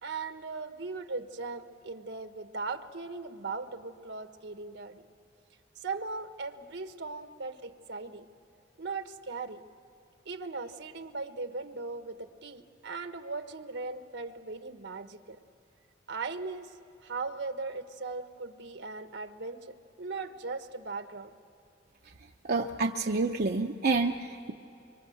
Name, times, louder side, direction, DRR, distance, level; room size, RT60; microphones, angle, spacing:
voice 1, 0.0-5.0 5.8-8.3 8.8-9.6 10.2-15.4 16.1-16.7 17.0-21.3, right 3 dB, 70° right, 9 dB, 1.2 m, -38 dB
voice 2, 22.4-24.5, right 3 dB, 55° right, 2 dB, 0.7 m, -28 dB
25.0 x 24.0 x 7.9 m, 2.7 s
head